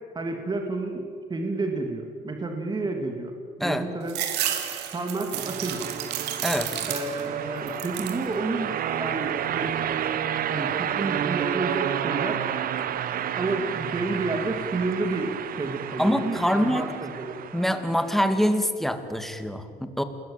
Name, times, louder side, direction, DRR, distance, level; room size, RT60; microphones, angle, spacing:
voice 1, 0.1-4.2 4.9-5.8 6.9-9.7 10.5-12.4 13.3-17.4, right 3 dB, 25° right, 3 dB, 2.9 m, -30 dB
sound 1, 4.1-7.4 7.7-8.3 8.7-9.4, right 11 dB, 90° right, 2.8 m, -32 dB
sound 2, 5.3-18.7, right 9 dB, 60° right, 1.4 m, -31 dB
voice 2, 16.0-16.9 17.5-20.0, equal, ahead, 8 dB, 2.3 m, -24 dB
28.0 x 21.0 x 9.0 m, 2.2 s
cardioid pair, 110°, 17 cm